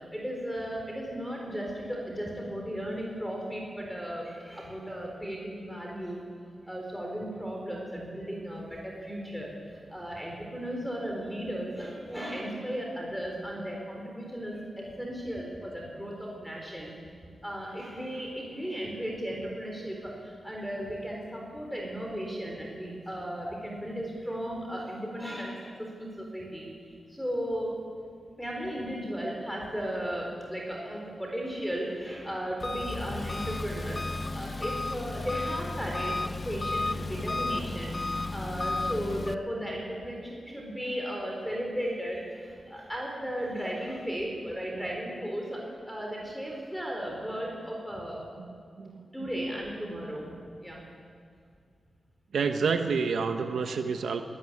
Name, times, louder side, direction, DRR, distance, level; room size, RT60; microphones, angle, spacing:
voice 1, 0.0-6.2 6.6-16.9 17.4-26.7 27.1-27.8 28.4-38.0 38.3-45.6 45.9-48.2 49.1-50.3 50.6-50.8 53.6-53.8, equal, ahead, -1 dB, 4.0 m, -35 dB
Engine, 32.6-39.3, left 2 dB, 30° left, 0.6 m, -33 dB
voice 2, 48.8-49.3 52.3-54.2, right 5 dB, 85° right, 6 dB, 1.1 m, -29 dB
23.0 x 13.0 x 9.7 m, 2.2 s
wide cardioid pair, 120°, 0 cm